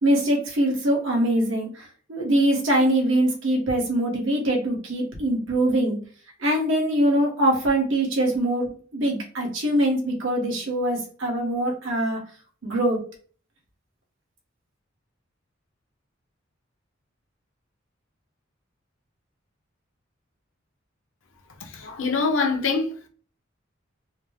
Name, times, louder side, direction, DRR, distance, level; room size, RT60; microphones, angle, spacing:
voice 1, 0.0-6.0 6.4-12.2 12.6-13.0, right 1 dB, 80° right, 1.4 m, -23 dB
voice 2, 21.6-23.1, left 4 dB, 80° left, 0.9 m, -25 dB
4.0 x 2.2 x 3.4 m
head